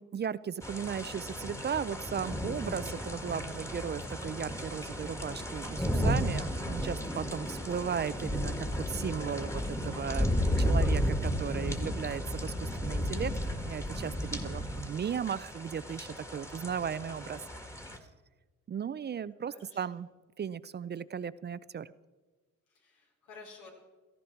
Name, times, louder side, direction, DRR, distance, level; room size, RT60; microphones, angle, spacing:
voice 1, 0.0-13.3 13.6-17.4 18.7-20.1 20.4-21.9, right 7 dB, 35° right, 17 dB, 0.5 m, -36 dB
sound 1, 0.6-18.0, equal, 10° left, 1.7 m, -33 dB
voice 2, 11.6-11.9 14.1-14.8 19.5-20.0 22.7-23.7, left 4 dB, 85° left, -1 dB, 4.7 m, -54 dB
17.0 x 14.0 x 4.5 m, 1.3 s
cardioid pair, 90°, 30 cm